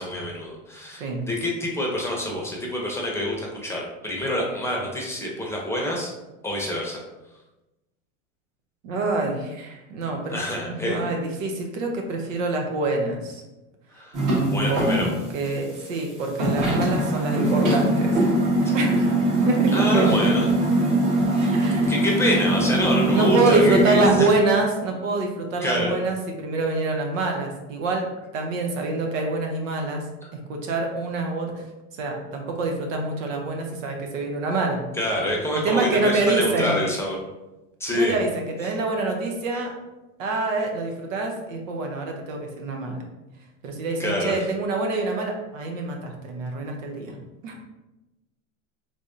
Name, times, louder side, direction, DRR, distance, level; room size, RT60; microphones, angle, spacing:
voice 1, 0.0-6.1 6.4-7.0 10.3-11.0 13.9-14.2 14.5-15.1 19.7-20.5 21.7-24.3 25.6-25.9 30.2-30.3 34.9-37.2 37.8-38.2 38.6-38.7 39.5-39.6 44.0-44.4, left 1 dB, 5° left, -2 dB, 0.7 m, -26 dB
voice 2, 8.8-10.4 10.7-13.4 14.7-14.9 15.3-18.2 18.7-19.1 19.4-20.3 21.5-21.9 23.1-30.1 30.3-31.6 32.0-34.8 35.6-36.8 37.9-39.7 40.2-43.0 43.6-47.2 47.4-47.6, right 3 dB, 90° right, 2 dB, 0.8 m, -25 dB
sound 1, 14.1-15.1 15.5-15.6 16.0-16.1 16.4-24.1, right 1 dB, 50° right, 1.5 m, -22 dB
3.4 x 3.2 x 2.6 m, 1.0 s
supercardioid pair, 115°, 38 cm